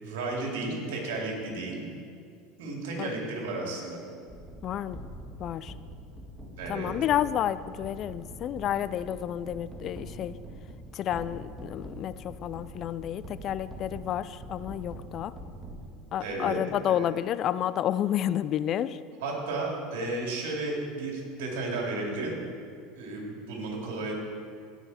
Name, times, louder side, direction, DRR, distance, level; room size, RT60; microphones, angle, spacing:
voice 1, 0.0-1.9 2.6-4.0 6.6-6.9 16.2-16.6 16.9-17.1 19.2-22.4 23.0-24.1, right 2 dB, 75° right, -1 dB, 2.8 m, -33 dB
sound 1, 4.3-16.4, right 1 dB, 20° right, 1.7 m, -44 dB
voice 2, 4.6-5.0 5.4-5.7 6.7-10.3 10.9-15.3 16.1-19.0, left 11 dB, 45° left, 16 dB, 0.3 m, -30 dB
17.0 x 5.7 x 4.3 m, 2.3 s
hypercardioid pair, 90°, 0 cm